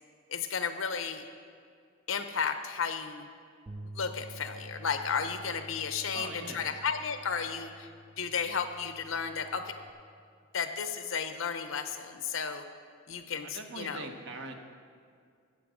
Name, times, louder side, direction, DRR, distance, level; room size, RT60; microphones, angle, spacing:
voice 1, 0.3-1.2 2.1-3.3 3.9-7.9 8.2-9.8 10.5-12.6 13.1-14.1, left 6 dB, 80° left, 8 dB, 0.8 m, -33 dB
sound 1, 3.7-9.9, right 1 dB, 25° right, 0.5 m, -49 dB
voice 2, 6.1-6.8 13.4-14.6, right 2 dB, 65° right, 4 dB, 1.1 m, -42 dB
14.5 x 7.9 x 5.1 m, 2.2 s
head